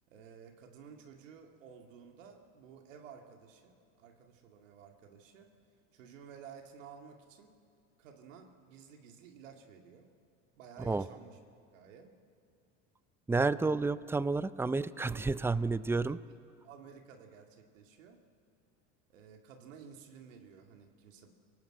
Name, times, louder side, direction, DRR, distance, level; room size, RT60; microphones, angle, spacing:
voice 1, 0.1-5.5 5.9-7.5 8.0-10.1 10.6-11.4 11.7-12.1 15.0-15.7 16.6-18.2 19.1-21.3, right 6 dB, 85° right, 4 dB, 2.2 m, -53 dB
voice 2, 13.3-16.2, right 3 dB, 5° right, 16 dB, 0.5 m, -30 dB
27.5 x 18.5 x 7.8 m, 2.4 s
supercardioid pair, 95°, 37 cm